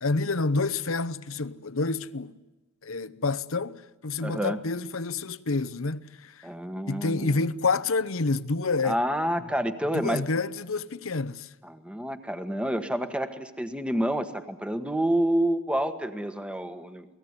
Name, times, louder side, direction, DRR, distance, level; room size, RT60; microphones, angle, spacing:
voice 1, 0.0-2.3 2.8-6.4 6.9-9.0 9.9-11.5, left 3 dB, 65° left, 0.9 m, -28 dB
voice 2, 4.2-4.6 6.4-7.4 8.8-10.2 11.6-17.1, right 1 dB, 5° right, 1.4 m, -28 dB
29.0 x 19.0 x 9.7 m
head